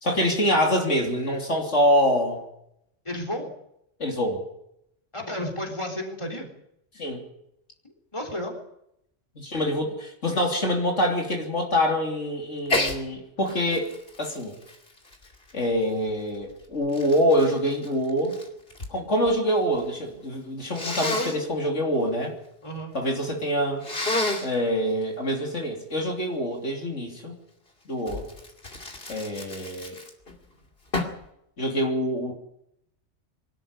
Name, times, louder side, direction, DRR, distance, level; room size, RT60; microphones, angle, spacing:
voice 1, 0.0-2.4 4.0-4.5 7.0-7.2 9.4-13.9 14.2-14.5 15.5-18.4 18.9-22.3 22.9-23.8 24.4-27.3 27.9-28.2 29.1-30.0 31.6-32.3, equal, 75° left, 1 dB, 3.6 m, -25 dB
voice 2, 3.1-3.5 5.1-6.5 8.1-8.5 22.6-22.9, left 1 dB, 25° left, 1 dB, 3.8 m, -32 dB
Sneeze, 12.7-13.0 13.5-15.8 16.5-19.0 19.2-19.9 20.7-21.4 23.8-24.5 28.1-30.3 30.9-31.3, left 2 dB, 50° left, 2.8 m, -30 dB
23.0 x 12.5 x 9.8 m, 0.78 s
omnidirectional pair, 1.2 m